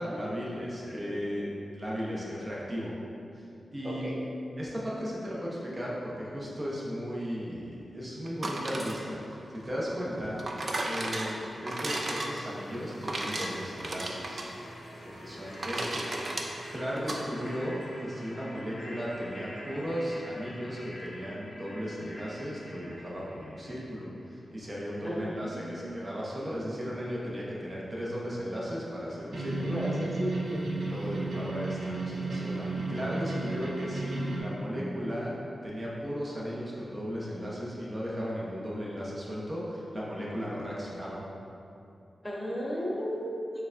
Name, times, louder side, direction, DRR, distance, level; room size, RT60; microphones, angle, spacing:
voice 1, 0.0-1.4 1.7-2.9 3.3-3.5 3.7-4.2 4.6-10.4 10.8-14.4 15.0-29.8 30.8-35.4 35.6-41.2, equal, 25° right, -6 dB, 0.7 m, -36 dB
voice 2, 0.8-1.2 3.8-4.2 25.0-26.0 29.7-30.6 42.2-43.4, equal, 15° left, -4 dB, 0.5 m, -35 dB
sound 1, 8.3-17.2, right 1 dB, 40° right, 0.3 m, -35 dB
sound 2, 11.4-24.3, equal, 75° left, 0.6 m, -47 dB
sound 3, 29.3-34.4, right 3 dB, 70° right, 0.8 m, -33 dB
6.6 x 2.2 x 2.5 m, 2.7 s
wide cardioid pair, 145°, 0 cm